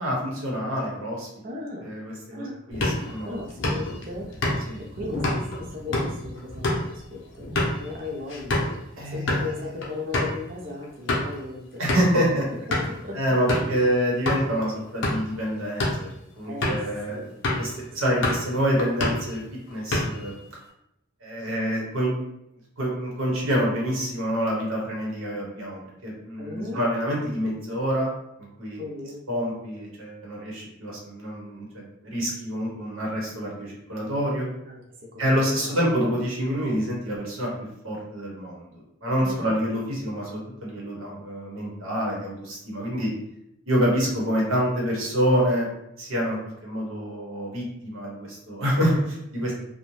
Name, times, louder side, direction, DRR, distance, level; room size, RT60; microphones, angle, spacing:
voice 1, 0.0-1.3 1.8-3.4 4.7-4.8 9.0-9.5 11.8-12.4 13.1-16.1 16.4-17.2 17.6-19.4 19.7-20.4 21.2-22.1 22.8-28.1 28.4-28.8 29.3-34.5 35.2-37.5 37.8-38.7 39.0-43.1 43.7-45.7 46.0-49.5, equal, 70° right, -2 dB, 0.9 m, -27 dB
voice 2, 1.4-1.9 2.3-2.6 3.0-7.5 7.8-8.7 9.1-11.8 12.7-13.2 13.7-13.9 16.5-16.8 17.1-17.3 17.9-18.2 21.4-21.5 26.4-26.8 28.8-29.2 34.7-34.8 35.1-35.8 39.2-39.5, left 3 dB, 40° right, -1 dB, 0.4 m, -37 dB
sound 1, 2.7-8.8 9.1-9.5 9.8-9.9 10.1-10.3 10.8-11.4 11.9-12.2 12.7-13.0 13.5-13.8 14.3-14.4 14.9-15.3 15.7-16.1 16.6-16.9 17.4-17.7 18.0-18.5 18.8-19.3 19.7-20.3, left 1 dB, 55° left, 0.6 m, -27 dB
2.6 x 2.1 x 3.0 m, 0.83 s
head